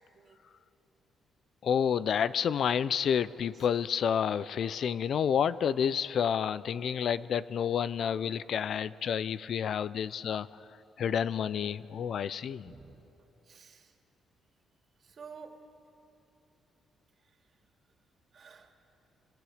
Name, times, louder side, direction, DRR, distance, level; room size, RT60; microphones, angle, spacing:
voice 1, 1.6-10.5 11.0-12.6, left 8 dB, 60° left, 17 dB, 0.5 m, -29 dB
voice 2, 12.6-13.9 15.0-15.7 17.2-17.4 18.3-18.7, right 5 dB, 50° right, 3 dB, 2.5 m, -52 dB
28.5 x 26.0 x 5.0 m, 3.0 s
cardioid pair, 90°, 0 cm